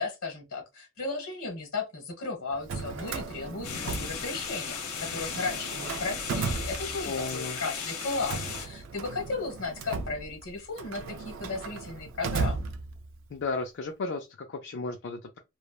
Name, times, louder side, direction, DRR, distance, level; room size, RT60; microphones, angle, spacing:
voice 1, 0.0-12.7, left 3 dB, 65° left, 1.2 m, -35 dB
Drawer open or close, 2.5-4.7 5.0-7.4 8.0-13.3, right 4 dB, 55° right, 0.3 m, -36 dB
sound 1, 3.6-8.7, left 6 dB, 85° left, 0.9 m, -36 dB
voice 2, 7.0-7.6 13.3-15.4, left 3 dB, 50° left, 0.4 m, -34 dB
3.1 x 2.0 x 2.3 m
head